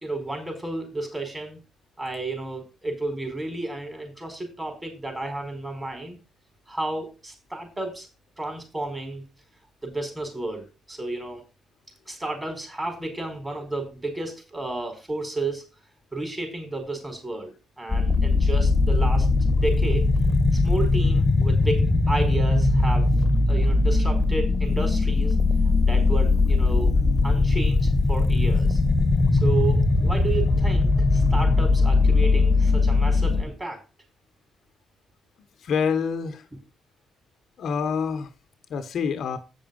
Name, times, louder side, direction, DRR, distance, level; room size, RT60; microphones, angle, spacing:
voice 1, 0.0-1.6 2.0-6.2 6.7-8.1 8.4-9.2 9.8-11.4 12.1-15.6 16.1-19.3 19.6-20.1 20.5-23.1 23.5-25.4 25.8-26.9 27.2-28.8 29.4-33.8, right 2 dB, 20° right, 4 dB, 4.5 m, -32 dB
sound 1, 17.9-33.4, left 3 dB, 15° left, 1.7 m, -20 dB
voice 2, 35.6-36.4 37.6-38.3 38.7-39.4, left 6 dB, 65° left, 7 dB, 1.3 m, -26 dB
8.4 x 6.3 x 5.4 m, 0.31 s
cardioid pair, 90°, 0 cm